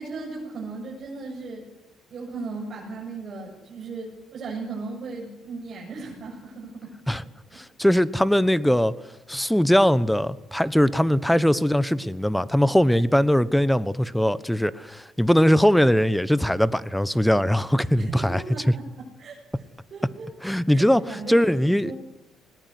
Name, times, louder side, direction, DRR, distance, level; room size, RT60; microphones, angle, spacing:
voice 1, 0.0-1.6 2.1-6.9 18.0-19.4 19.9-20.3 20.7-21.4 21.8-21.9, right 3 dB, 50° right, -4 dB, 7.7 m, -36 dB
voice 2, 7.5-9.0 9.3-18.4 20.4-21.9, equal, 5° left, 18 dB, 1.1 m, -21 dB
20.5 x 19.0 x 9.8 m, 1.0 s
cardioid pair, 80°, 0 cm